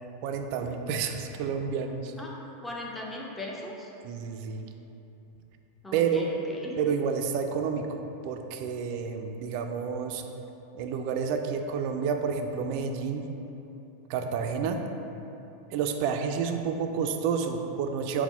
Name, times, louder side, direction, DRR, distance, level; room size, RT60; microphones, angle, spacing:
voice 1, 0.2-2.1 4.0-4.6 5.9-6.3 6.8-10.2 10.7-13.2 14.1-14.8 15.7-18.2, right 6 dB, 55° right, 5 dB, 0.3 m, -30 dB
voice 2, 2.6-3.9 5.8-6.7, left 1 dB, 10° left, -3 dB, 0.6 m, -38 dB
4.1 x 2.1 x 4.2 m, 3.0 s
hypercardioid pair, 100°, 0 cm